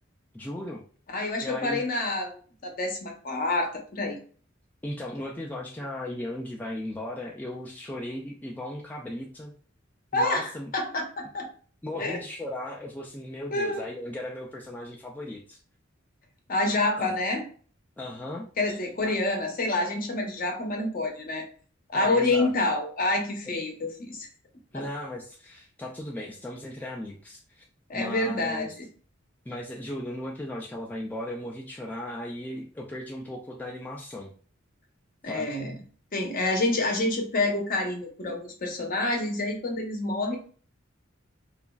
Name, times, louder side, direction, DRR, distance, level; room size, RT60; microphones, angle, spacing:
voice 1, 0.3-0.8 1.4-1.8 4.8-9.5 10.1-10.7 11.8-15.6 17.0-17.1 18.0-18.5 19.0-19.1 21.9-22.5 24.7-27.6 27.9-28.7 29.5-34.3 35.2-35.6, left 1 dB, 10° left, -2 dB, 0.3 m, -36 dB
voice 2, 1.1-2.3 2.6-4.2 10.1-11.5 11.9-12.2 13.5-13.8 16.5-17.5 18.6-21.4 21.9-24.3 24.7-24.9 27.9-28.8 35.2-35.8 36.1-40.4, left 2 dB, 45° left, 2 dB, 0.7 m, -27 dB
3.0 x 2.4 x 2.2 m, 0.42 s
head